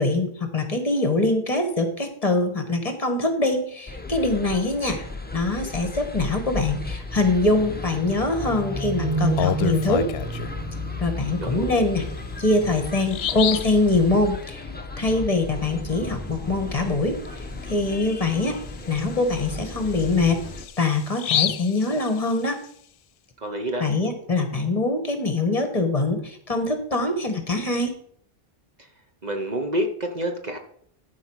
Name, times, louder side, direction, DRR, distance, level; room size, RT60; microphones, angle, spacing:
voice 1, 0.0-5.0 5.3-10.1 11.0-12.0 12.4-14.7 15.0-18.6 18.9-20.4 20.8-22.6 23.8-27.9, left 2 dB, 35° left, 6 dB, 1.6 m, -23 dB
sound 1, 3.9-20.7, left 3 dB, 10° left, 0.9 m, -35 dB
sound 2, 8.3-11.8, right 3 dB, 10° right, 2.2 m, -29 dB
Bird vocalization bird call bird song, 9.1-10.6 12.1-12.2 12.6-12.7 13.1-13.8 17.3-17.4 17.8-17.9 18.4-22.7, left 10 dB, 90° left, 0.8 m, -29 dB
voice 2, 11.4-11.8 23.4-23.9 29.2-30.6, right 1 dB, 45° right, 4 dB, 1.1 m, -28 dB
12.0 x 4.5 x 6.3 m, 0.63 s
omnidirectional pair, 1.0 m